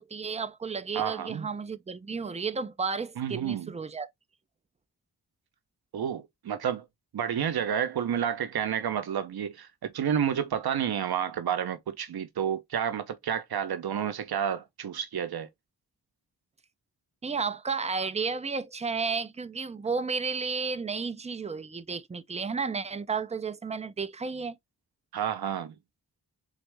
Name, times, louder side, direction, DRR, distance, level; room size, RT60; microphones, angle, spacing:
voice 1, 0.0-4.1 17.2-24.6, right 5 dB, 20° right, 0.4 m, -32 dB
voice 2, 0.9-1.5 3.2-3.7 5.9-6.8 7.1-15.5 25.1-25.7, right 8 dB, 70° right, 0.7 m, -30 dB
4.0 x 3.5 x 3.2 m
wide cardioid pair, 175°, 38 cm